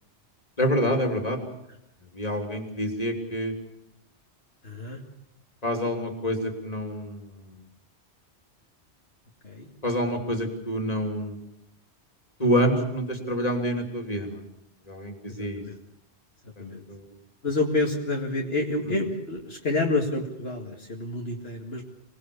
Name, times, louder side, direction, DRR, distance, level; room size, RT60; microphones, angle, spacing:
voice 1, 0.6-1.4 2.1-3.5 5.6-7.6 9.8-11.4 12.4-14.4 14.9-15.6 16.6-17.1, equal, 35° left, 2 dB, 3.4 m, -27 dB
voice 2, 4.6-5.0 9.4-9.7 15.3-15.7 16.6-16.8 17.4-21.8, left 2 dB, 60° left, 0 dB, 2.4 m, -28 dB
25.5 x 19.5 x 7.1 m, 0.82 s
omnidirectional pair, 1.2 m